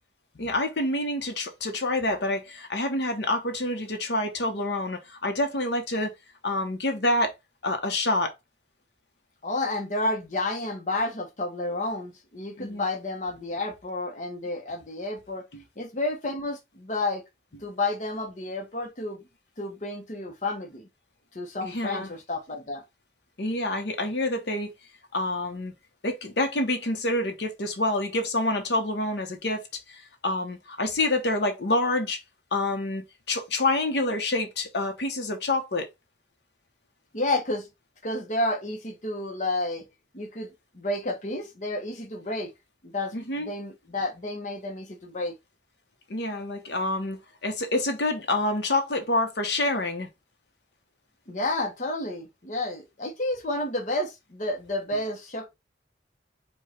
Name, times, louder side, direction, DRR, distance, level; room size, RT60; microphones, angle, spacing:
voice 1, 0.4-6.1 6.4-7.3 7.6-8.3 12.6-12.8 15.5-15.6 21.6-22.1 23.4-24.7 25.1-25.7 26.0-29.6 29.9-32.2 32.5-35.9 43.1-43.5 46.1-50.1, left 2 dB, 70° left, 0.9 m, -27 dB
voice 2, 9.4-15.4 15.8-17.2 17.6-19.2 19.6-20.8 21.3-22.8 37.1-37.7 38.0-39.9 40.1-40.5 40.7-42.5 42.8-45.3 51.3-55.5, left 2 dB, 40° left, 0.9 m, -30 dB
4.8 x 2.4 x 4.3 m
head